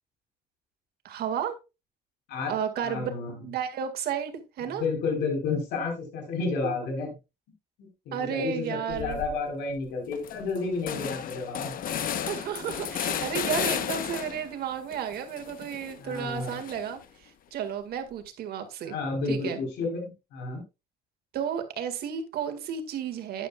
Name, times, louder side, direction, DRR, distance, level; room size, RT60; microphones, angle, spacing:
voice 1, 1.0-1.6 2.5-3.1 3.4-4.8 6.3-6.7 8.1-9.2 12.3-18.9 19.3-19.6 21.3-23.5, right 8 dB, 70° right, 8 dB, 2.1 m, -32 dB
voice 2, 2.8-3.3 4.7-7.1 7.8-11.7 16.0-16.6 18.8-20.6, left 4 dB, 85° left, 2 dB, 4.4 m, -31 dB
sound 1, 8.9-9.4 9.8-9.9 10.1-14.5 14.9-17.0, left 9 dB, 55° left, 1.0 m, -33 dB
12.0 x 9.3 x 2.4 m, 0.27 s
cardioid pair, 110°, 17 cm